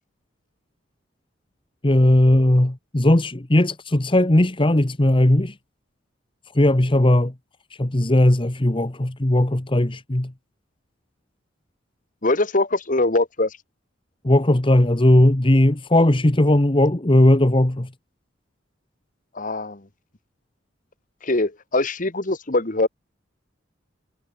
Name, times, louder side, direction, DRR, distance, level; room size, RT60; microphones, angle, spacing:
voice 1, 1.8-5.5 6.5-7.3 7.8-10.3 14.2-17.9, left 1 dB, 25° left, 1.1 m, -17 dB
voice 2, 12.2-13.5 19.3-19.8 21.2-22.9, left 2 dB, 40° left, 1.7 m, -22 dB
head